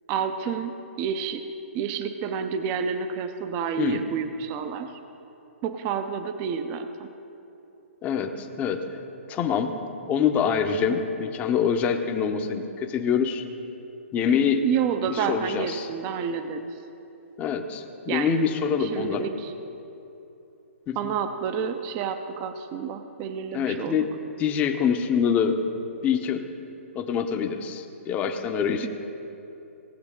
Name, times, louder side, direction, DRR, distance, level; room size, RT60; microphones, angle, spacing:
voice 1, 0.1-1.4 1.7-5.0 5.6-7.1 14.6-16.7 18.1-18.3 18.8-19.5 21.0-24.1 28.8-28.9, right 7 dB, 30° right, 8 dB, 0.6 m, -29 dB
voice 2, 8.0-8.8 9.3-9.7 10.1-13.4 14.1-14.6 15.1-15.9 17.4-19.3 20.9-21.1 23.5-24.1 24.4-25.5 26.0-26.4 26.9-28.9, left 7 dB, 20° left, 6 dB, 0.8 m, -25 dB
17.5 x 8.1 x 3.7 m, 2.9 s
hypercardioid pair, 140°, 7 cm